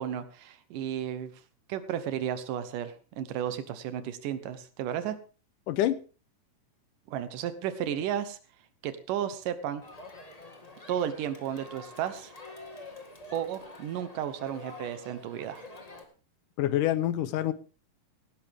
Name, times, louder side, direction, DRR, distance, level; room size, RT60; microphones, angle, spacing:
voice 1, 0.0-1.3 1.7-5.2 7.1-8.4 8.8-9.8 10.9-12.3 13.3-15.6, right 10 dB, 75° right, 12 dB, 2.6 m, -33 dB
voice 2, 5.7-6.0 16.6-17.5, left 13 dB, 75° left, 15 dB, 2.2 m, -26 dB
Crowd, 9.8-16.0, left 2 dB, 25° left, 0.7 m, -47 dB
17.0 x 11.5 x 3.6 m, 0.35 s
omnidirectional pair, 4.0 m